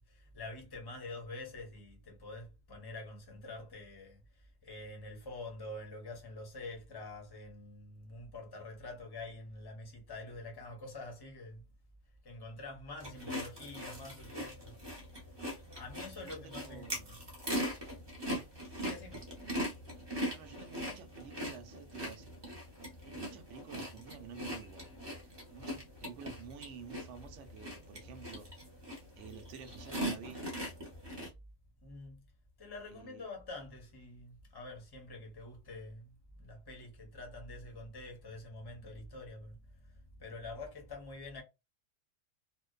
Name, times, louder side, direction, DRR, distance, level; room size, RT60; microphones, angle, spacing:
voice 1, 0.0-11.7 12.2-14.8 15.5-17.3 18.8-19.3 31.8-32.2 32.6-41.4, left 2 dB, 20° left, 0.7 m, -47 dB
sound 1, 13.0-31.3, equal, 25° right, 0.7 m, -41 dB
voice 2, 16.2-17.2 18.2-18.5 20.3-22.6 23.0-28.5 29.2-30.5 32.9-33.2, right 6 dB, 70° right, 0.9 m, -51 dB
2.6 x 2.1 x 2.2 m
omnidirectional pair, 1.3 m